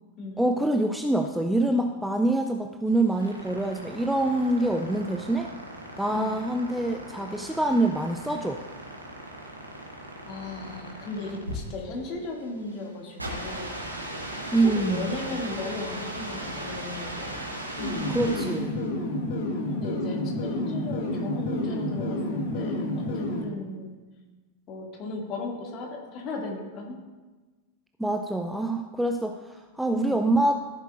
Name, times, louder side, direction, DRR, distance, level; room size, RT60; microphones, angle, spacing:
voice 1, 0.4-5.5 6.0-8.6 14.5-15.1 18.1-18.7 28.0-30.5, right 1 dB, 5° right, 4 dB, 0.5 m, -25 dB
sound 1, 2.9-18.8, right 1 dB, 85° right, 1.8 m, -38 dB
voice 2, 10.3-13.8 14.5-17.5 19.6-24.0 24.7-27.0 29.9-30.2, left 2 dB, 35° left, -1 dB, 2.4 m, -36 dB
sound 2, 17.8-23.4, left 1 dB, 50° left, 1.6 m, -29 dB
14.5 x 8.1 x 2.6 m, 1.3 s
figure-of-eight pair, 90°, 0 cm